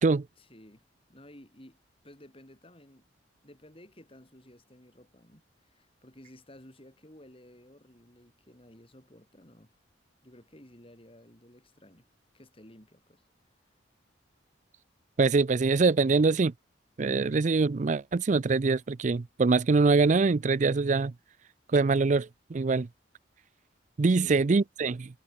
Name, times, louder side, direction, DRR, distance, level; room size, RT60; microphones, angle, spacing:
voice 1, 0.4-0.8 1.1-1.8 2.0-3.1 3.4-9.7 10.2-12.1 12.3-13.2 24.2-24.4, left 1 dB, 30° left, 4.8 m, -54 dB
voice 2, 15.2-16.5 17.0-21.1 21.7-22.9 24.0-25.1, right 4 dB, 40° right, 0.4 m, -24 dB
head